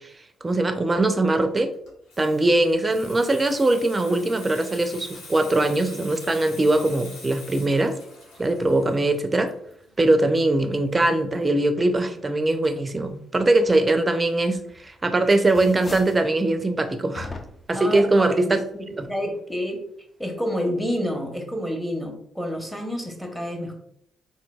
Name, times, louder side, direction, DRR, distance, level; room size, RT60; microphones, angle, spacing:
voice 1, 0.4-1.7 2.2-8.0 8.4-9.5 10.0-17.3 17.7-18.6 19.0-19.1, right 2 dB, 30° right, 9 dB, 0.4 m, -21 dB
Water tap faucet / Sink (filling or washing), 1.7-11.0 11.3-11.6, left 2 dB, 70° left, 0.8 m, -45 dB
sound 1, 14.6-15.0 15.3-16.3 17.1-17.8, left 3 dB, 30° left, 0.4 m, -39 dB
voice 2, 17.7-19.8 20.2-23.7, equal, 5° left, 2 dB, 0.9 m, -29 dB
3.8 x 2.5 x 2.3 m, 0.69 s
hypercardioid pair, 45°, 0 cm